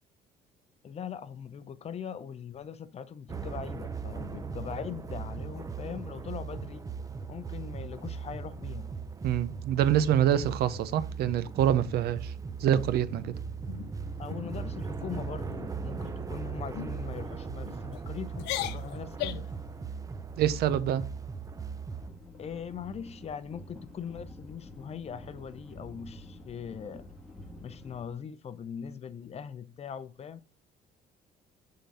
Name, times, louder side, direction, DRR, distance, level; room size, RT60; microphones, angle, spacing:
voice 1, 0.8-6.8 7.3-8.9 14.2-19.4 22.4-27.0 27.6-30.4, left 7 dB, 40° left, 0.6 m, -41 dB
sound 1, 3.3-22.1, right 5 dB, 20° right, 0.5 m, -38 dB
voice 2, 9.2-12.3 12.6-13.3 20.4-21.0, right 10 dB, 70° right, 0.6 m, -26 dB
sound 2, 12.6-13.2 13.7-13.9 14.3-14.6 14.9-15.3 15.9-16.3 16.7-16.9 17.6-18.0 18.3-19.6, left 14 dB, 90° left, 0.5 m, -38 dB
sound 3, 22.0-28.0, left 1 dB, ahead, 2.1 m, -48 dB
6.9 x 3.9 x 4.2 m
cardioid pair, 110°, 17 cm